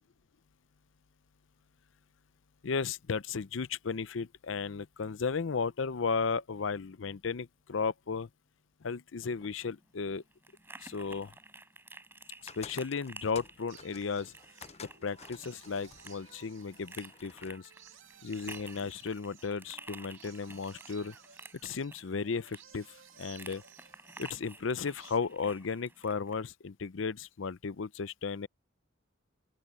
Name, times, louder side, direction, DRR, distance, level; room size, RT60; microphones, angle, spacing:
voice 1, 2.6-8.3 8.8-10.2 10.8-11.3 12.6-14.3 15.0-17.7 18.2-21.1 21.6-22.9 23.2-23.6 24.2-28.5, left 5 dB, 75° left, 0.6 m, -34 dB
sound 1, 9.2-26.4, right 2 dB, 10° right, 4.0 m, -52 dB
sound 2, 12.5-17.6, left 6 dB, 35° left, 0.8 m, -52 dB
sound 3, 13.7-25.2, right 8 dB, 80° right, 2.0 m, -58 dB
open air
head